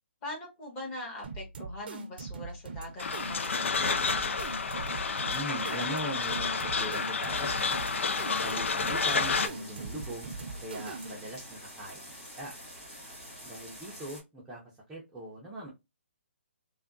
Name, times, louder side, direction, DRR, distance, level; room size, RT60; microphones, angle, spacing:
voice 1, 0.2-4.0, left 1 dB, 25° left, 1.4 m, -42 dB
sound 1, 1.2-11.3, right 3 dB, 50° right, 0.6 m, -42 dB
sound 2, 3.0-9.5, left 5 dB, 75° left, 0.4 m, -30 dB
voice 2, 5.2-7.8 8.4-10.3 10.6-12.6 13.4-15.7, right 1 dB, 5° right, 0.6 m, -40 dB
sound 3, 7.3-14.2, equal, 10° left, 1.4 m, -47 dB
3.4 x 2.2 x 2.5 m
hypercardioid pair, 155°, 7 cm